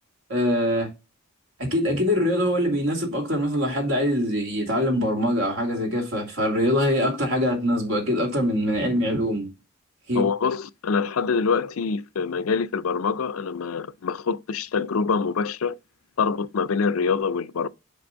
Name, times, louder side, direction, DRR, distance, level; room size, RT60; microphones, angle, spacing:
voice 1, 0.3-0.9 1.6-9.5 10.1-10.3, equal, 75° right, 2.5 m, -23 dB
voice 2, 10.1-15.8 16.2-17.7, left 5 dB, 85° left, 0.5 m, -25 dB
5.9 x 5.3 x 5.5 m
head